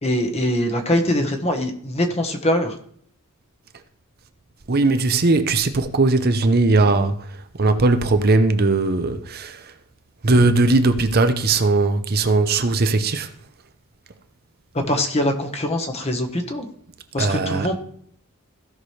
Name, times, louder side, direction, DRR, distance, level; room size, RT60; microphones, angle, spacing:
voice 1, 0.0-2.8 14.7-16.7 17.1-17.8, left 1 dB, 30° left, 1.2 m, -23 dB
voice 2, 4.7-9.7 10.2-13.3 17.2-17.7, right 3 dB, 45° right, 0.7 m, -19 dB
16.0 x 6.0 x 3.3 m
head